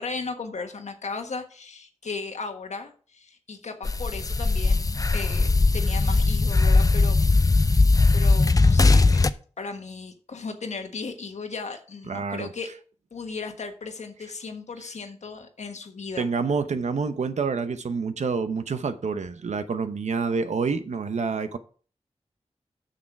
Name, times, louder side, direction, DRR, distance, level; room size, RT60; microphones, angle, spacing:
voice 1, 0.0-7.2 8.1-9.2 9.6-12.7 13.1-16.3, left 4 dB, 80° left, 1.4 m, -36 dB
sound 1, 3.8-9.3, left 3 dB, 30° left, 0.6 m, -19 dB
voice 2, 12.1-12.5 16.2-21.6, right 5 dB, 80° right, 0.9 m, -27 dB
7.2 x 6.7 x 4.7 m
cardioid pair, 50°, 12 cm